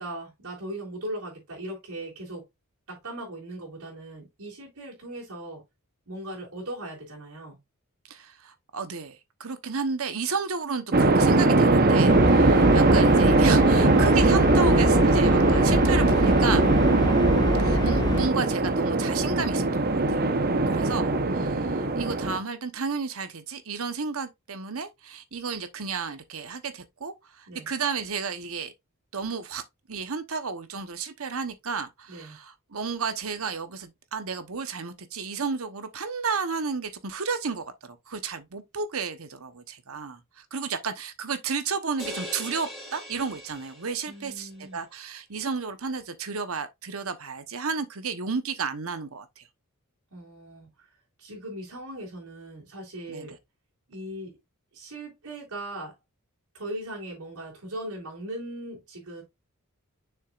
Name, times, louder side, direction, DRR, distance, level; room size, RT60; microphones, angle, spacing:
voice 1, 0.0-2.4 2.9-5.6 6.1-7.6 27.5-27.7 32.1-32.4 44.1-44.8 50.1-50.9 51.2-53.4 53.9-54.4 54.7-55.9 56.5-59.2, right 1 dB, 85° right, 3.5 m, -39 dB
voice 2, 8.1-16.7 17.6-20.2 20.7-28.7 29.1-29.6 29.9-49.5 53.1-53.3, right 5 dB, 70° right, 1.0 m, -32 dB
sound 1, 10.9-22.4, right 2 dB, 45° right, 0.9 m, -20 dB
sound 2, 12.1-18.3, left 1 dB, 20° left, 0.6 m, -27 dB
sound 3, 42.0-44.3, left 1 dB, ahead, 3.2 m, -40 dB
6.9 x 6.3 x 2.5 m
head